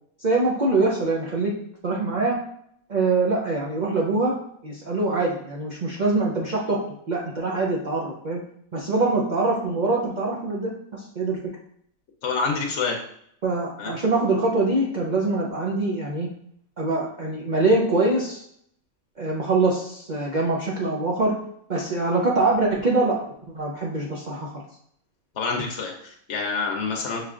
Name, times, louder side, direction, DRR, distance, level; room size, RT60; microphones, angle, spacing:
voice 1, 0.2-1.5 1.8-2.4 2.9-6.8 7.1-8.4 8.7-11.4 13.4-16.3 16.8-18.4 19.2-21.4 21.7-23.3 23.5-24.6, right 3 dB, 65° right, -3 dB, 0.4 m, -24 dB
voice 2, 12.2-13.0 13.8-13.9 25.4-27.2, left 4 dB, 60° left, 1 dB, 0.9 m, -27 dB
6.1 x 3.2 x 2.4 m, 0.68 s
omnidirectional pair, 1.6 m